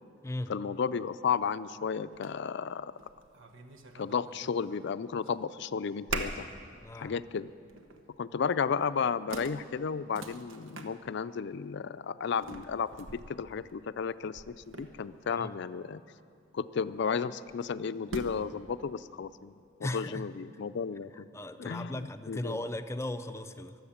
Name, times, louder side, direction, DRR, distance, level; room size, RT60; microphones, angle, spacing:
voice 1, 0.5-2.9 4.0-6.5 7.0-7.5 8.2-16.0 16.5-19.5 19.8-21.1 21.6-22.6, left 6 dB, 60° left, 14 dB, 0.4 m, -33 dB
sound 1, 1.4-1.5 2.1-2.3 2.8-4.9 5.2-5.7 6.1-6.6 7.0-7.2 7.7-8.1 8.8-8.9 9.3-10.9 12.4-15.3 17.5-18.6, right 3 dB, 85° right, 1.1 m, -42 dB
voice 2, 6.8-7.1 15.4-15.5 19.8-20.3 21.3-23.8, left 1 dB, 15° left, 9 dB, 0.5 m, -37 dB
23.5 x 7.8 x 7.3 m, 2.4 s
head